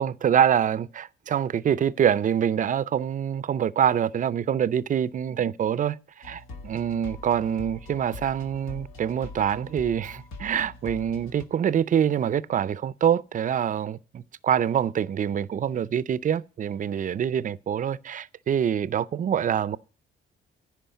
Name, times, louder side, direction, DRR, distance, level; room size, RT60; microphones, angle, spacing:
voice 1, 0.0-19.8, right 9 dB, 40° right, 0.5 m, -25 dB
sound 1, 6.2-11.4, left 3 dB, 85° left, 2.0 m, -43 dB
10.5 x 4.9 x 8.1 m
cardioid pair, 90°, 20 cm